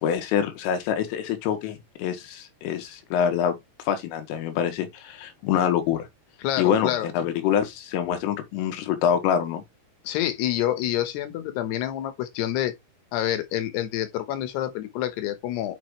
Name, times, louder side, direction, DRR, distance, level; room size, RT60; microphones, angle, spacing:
voice 1, 0.0-3.5 3.9-6.1 6.6-9.6, left 9 dB, 85° left, 4.2 m, -25 dB
voice 2, 6.4-7.1 10.0-12.7 13.1-15.8, left 12 dB, 70° left, 2.8 m, -27 dB
10.5 x 5.1 x 3.2 m
omnidirectional pair, 5.7 m